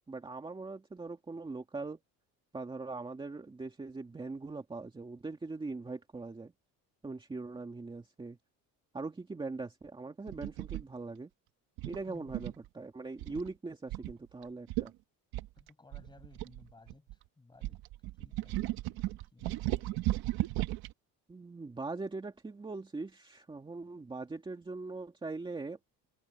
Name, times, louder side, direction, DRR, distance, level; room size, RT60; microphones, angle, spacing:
voice 1, 0.1-2.0 2.5-6.5 7.0-8.4 8.9-11.3 11.8-14.9 21.3-25.8, right 3 dB, 15° right, 2.2 m, -41 dB
sound 1, 10.3-10.8 11.8-12.7 13.2-13.5 13.9-14.1 14.4-14.5 14.7-14.9 15.3-17.1 17.6-20.9, right 17 dB, 85° right, 1.5 m, -35 dB
voice 2, 12.1-12.4 15.6-17.9 18.2-20.1, left 3 dB, 10° left, 7.0 m, -58 dB
cardioid pair, 155°, 36 cm